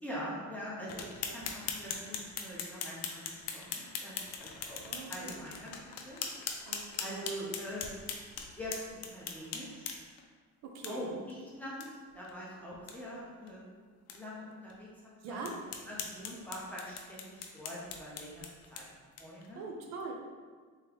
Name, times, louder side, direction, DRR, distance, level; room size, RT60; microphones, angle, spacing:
voice 1, 0.0-4.8 5.1-6.2 7.0-7.9 8.6-9.9 10.9-11.9 12.1-13.7 14.1-14.9 15.3-15.5 15.9-18.4 18.7-18.9 19.2-19.6, equal, 5° left, -7 dB, 0.6 m, -43 dB
sound 1, 0.9-10.2 10.8-10.9 11.3-11.4 11.8-11.9 12.2-12.3 12.7-13.0 13.5-13.6 14.1-14.2 14.7-14.8 15.4-19.5, left 6 dB, 55° left, 0.5 m, -41 dB
voice 2, 0.9-1.4 4.8-5.5 6.7-7.3 10.6-11.1 15.2-15.6 19.5-20.1, right 4 dB, 60° right, 1 dB, 0.6 m, -43 dB
3.6 x 3.5 x 2.9 m, 1.5 s
cardioid pair, 180°, 31 cm